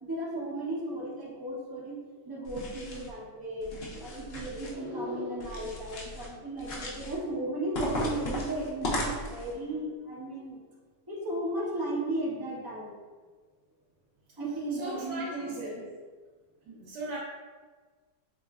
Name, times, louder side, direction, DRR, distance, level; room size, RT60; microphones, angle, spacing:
voice 1, 0.0-2.0 2.2-10.6 11.1-12.9 14.4-15.8, right 1 dB, 35° right, -7 dB, 0.3 m, -35 dB
sound 1, 2.4-3.1 3.6-4.7 5.4-6.3 6.6-7.2 7.7-9.5, left 1 dB, 65° left, 0.6 m, -36 dB
voice 2, 14.7-15.7 16.6-17.2, right 1 dB, 85° right, -4 dB, 1.3 m, -38 dB
3.9 x 3.0 x 2.3 m, 1.4 s
omnidirectional pair, 1.8 m